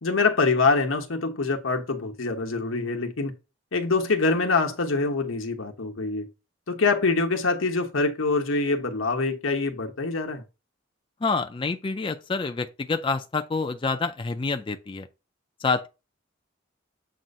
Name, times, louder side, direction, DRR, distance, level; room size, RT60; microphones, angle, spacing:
voice 1, 0.0-3.3 3.7-6.3 6.7-10.4, left 3 dB, 85° left, 1.0 m, -25 dB
voice 2, 11.2-15.1 15.6-15.9, left 4 dB, 25° left, 0.4 m, -27 dB
7.5 x 2.5 x 5.3 m
head